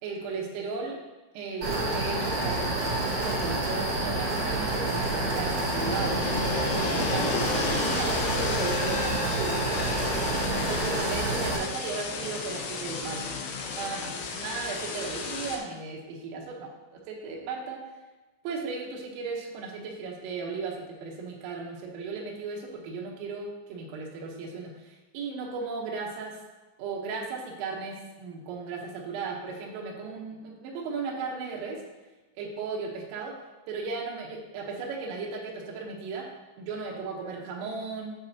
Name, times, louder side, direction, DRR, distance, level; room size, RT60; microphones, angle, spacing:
voice 1, 0.0-1.0 1.4-9.6 10.5-13.4 13.7-17.8 18.5-26.4 26.8-31.8 32.4-33.3 33.7-36.3 36.6-38.2, right 4 dB, 80° right, -1 dB, 3.8 m, -36 dB
sound 1, 1.6-11.6, right 2 dB, 60° right, 1.3 m, -28 dB
sound 2, 4.9-15.6, left 5 dB, 85° left, 2.3 m, -33 dB
13.5 x 5.4 x 2.9 m, 1.2 s
omnidirectional pair, 5.8 m